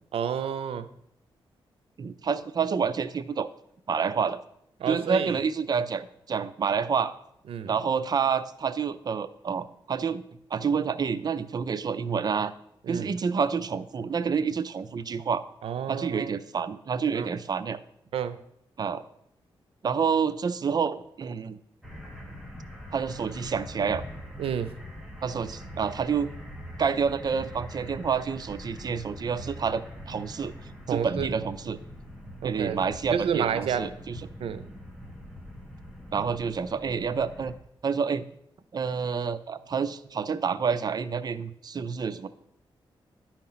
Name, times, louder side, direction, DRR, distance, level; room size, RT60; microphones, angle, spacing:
voice 1, 0.1-0.9 4.8-5.4 7.5-7.7 12.8-13.1 15.6-16.3 17.1-17.3 18.1-18.4 24.4-24.7 30.9-31.3 32.4-32.8 33.1-33.8 34.4-34.7, right 8 dB, 90° right, 13 dB, 0.6 m, -30 dB
voice 2, 2.0-3.5 3.9-4.4 4.9-7.2 7.6-10.2 10.5-12.5 12.9-15.4 15.9-17.8 18.8-19.0 19.8-21.6 22.9-24.0 25.2-26.3 26.8-30.5 30.9-31.8 32.4-34.2 36.1-37.5 37.8-38.2 38.7-42.3, right 6 dB, 45° right, 12 dB, 0.5 m, -28 dB
sound 1, 21.8-37.5, equal, ahead, 1.5 m, -42 dB
11.0 x 4.5 x 5.6 m, 0.74 s
cardioid pair, 105°, 9 cm